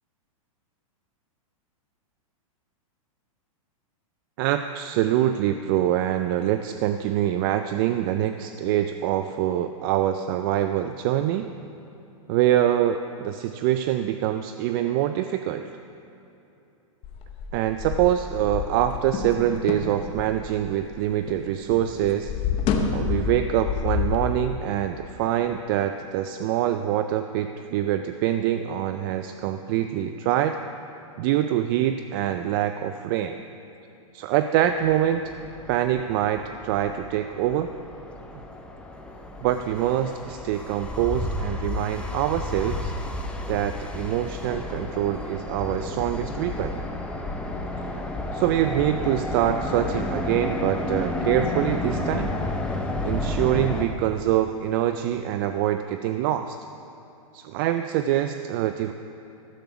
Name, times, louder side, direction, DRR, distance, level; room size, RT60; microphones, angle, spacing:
voice 1, 4.4-11.5 12.3-15.7 17.5-22.3 22.9-30.6 31.2-33.4 34.1-35.3 35.7-37.7 39.4-42.9 43.5-46.8 48.3-52.4 53.0-56.6 57.3-58.9, right 12 dB, 40° right, 9 dB, 0.4 m, -25 dB
sound 1, 17.0-21.4 21.7-24.2, left 6 dB, 30° left, 1.0 m, -29 dB
sound 2, 34.6-53.9, left 2 dB, 5° left, 0.7 m, -32 dB
13.0 x 8.6 x 5.9 m, 2.9 s
hypercardioid pair, 145°, 18 cm